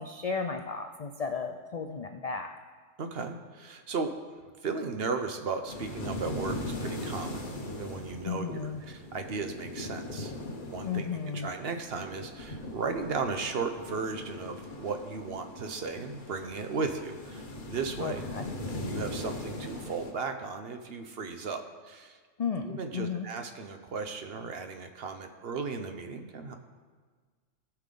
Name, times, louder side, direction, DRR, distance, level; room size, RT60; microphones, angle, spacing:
voice 1, 0.0-2.5 8.2-8.8 10.8-11.5 18.0-18.4 22.4-23.3, left 5 dB, 65° left, 5 dB, 0.3 m, -34 dB
voice 2, 3.0-4.2 4.6-11.1 11.3-18.2 18.7-22.2 22.6-26.6, right 4 dB, 55° right, 6 dB, 0.9 m, -36 dB
sound 1, 5.7-20.1, left 1 dB, 45° left, 1.1 m, -40 dB
17.5 x 5.8 x 3.8 m, 1.5 s
omnidirectional pair, 1.3 m